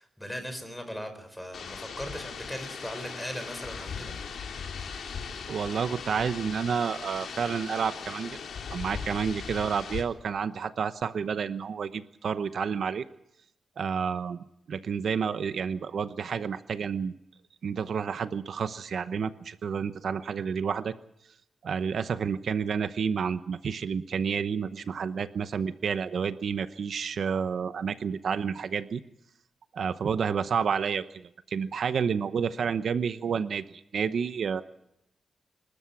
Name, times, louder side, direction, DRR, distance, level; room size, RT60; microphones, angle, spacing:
voice 1, 0.0-4.2, equal, 5° left, 8 dB, 5.0 m, -38 dB
sound 1, 1.5-10.0, left 6 dB, 80° left, 3.5 m, -39 dB
voice 2, 5.5-8.4 8.7-13.0 13.8-17.2 17.6-20.9 21.6-29.0 29.7-34.6, right 6 dB, 70° right, 11 dB, 0.9 m, -30 dB
26.5 x 13.5 x 8.5 m, 0.79 s
wide cardioid pair, 110°, 0 cm